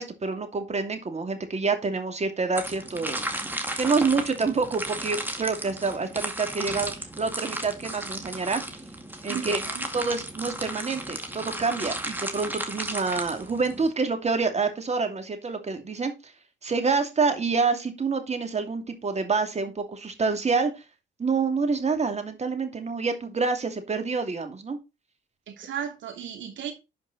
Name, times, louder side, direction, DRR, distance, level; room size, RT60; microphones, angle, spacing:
voice 1, 0.0-3.2 3.8-8.6 9.2-9.6 9.9-16.3 16.6-20.7 21.2-24.8, right 4 dB, 35° right, 2.5 m, -27 dB
sound 1, 2.6-13.9, right 1 dB, 10° right, 2.1 m, -34 dB
voice 2, 9.3-9.9 25.5-26.7, right 9 dB, 70° right, 3.0 m, -35 dB
11.5 x 5.2 x 4.1 m
cardioid pair, 90°, 20 cm